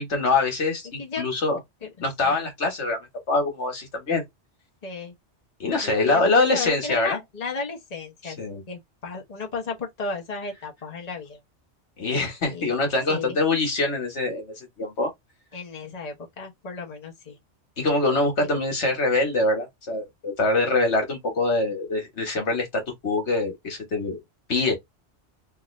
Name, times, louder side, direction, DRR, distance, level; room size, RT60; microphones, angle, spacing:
voice 1, 0.0-1.6 2.0-3.0 3.3-4.2 5.6-7.2 8.2-8.6 12.0-15.1 17.8-24.2 24.5-24.7, left 3 dB, 70° left, 1.7 m, -24 dB
voice 2, 4.8-5.1 5.8-8.4 8.7-11.4 12.5-12.8 13.1-13.4 15.5-17.4, left 4 dB, 35° left, 1.1 m, -34 dB
3.6 x 2.5 x 3.1 m
omnidirectional pair, 1.2 m